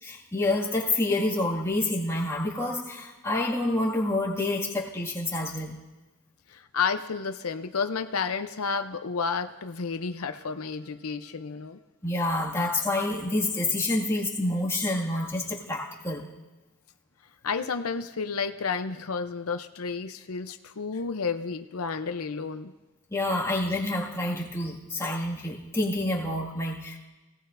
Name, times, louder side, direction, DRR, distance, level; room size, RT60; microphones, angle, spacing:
voice 1, 0.0-5.8 12.0-16.3 23.1-27.0, left 2 dB, 15° left, -3 dB, 2.1 m, -28 dB
voice 2, 6.5-11.8 17.4-22.7, left 5 dB, 90° left, 8 dB, 0.7 m, -31 dB
24.5 x 18.0 x 2.6 m, 1.1 s
head